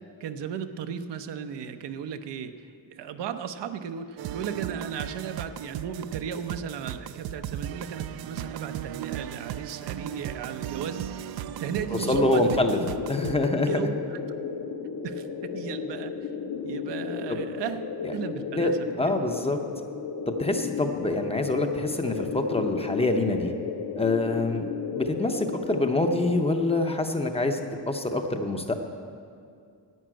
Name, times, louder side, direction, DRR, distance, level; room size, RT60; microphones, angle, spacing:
voice 1, 0.2-12.6 13.7-14.2 15.0-16.1 16.6-19.2, right 7 dB, 75° right, 9 dB, 0.8 m, -36 dB
sound 1, 4.2-13.5, right 10 dB, 60° right, 0.5 m, -36 dB
sound 2, 11.9-26.6, left 6 dB, 55° left, 0.7 m, -34 dB
voice 2, 12.1-12.8 13.1-13.7 17.3-17.4 18.0-18.1 18.6-18.7 19.0-19.6 20.3-23.5 24.0-24.7 24.9-27.6 27.9-28.7, left 2 dB, 15° left, 5 dB, 0.6 m, -25 dB
11.0 x 8.6 x 8.8 m, 2.3 s
wide cardioid pair, 175°, 42 cm